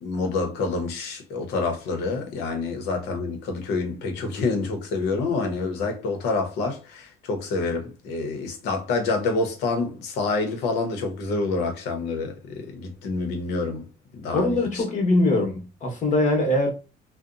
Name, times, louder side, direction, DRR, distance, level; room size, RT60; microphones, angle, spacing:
voice 1, 0.0-13.9 14.1-14.8, left 3 dB, 85° left, 0.8 m, -27 dB
voice 2, 14.3-16.7, left 2 dB, 45° left, 1.0 m, -22 dB
2.7 x 2.1 x 2.5 m
cardioid pair, 110°, 17 cm